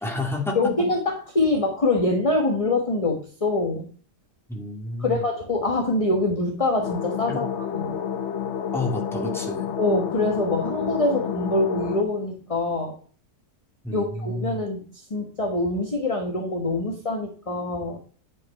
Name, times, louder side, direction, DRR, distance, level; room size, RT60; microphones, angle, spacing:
voice 1, 0.0-0.6 4.5-5.2 7.3-7.4 8.7-9.7 13.8-14.6, left 2 dB, ahead, 0 dB, 2.0 m, -30 dB
voice 2, 0.5-3.9 5.0-8.0 9.8-13.0 13.9-18.0, left 2 dB, 20° left, 2 dB, 1.2 m, -24 dB
sound 1, 6.8-12.0, left 8 dB, 65° left, 0.7 m, -29 dB
9.5 x 5.5 x 4.2 m, 0.41 s
omnidirectional pair, 1.9 m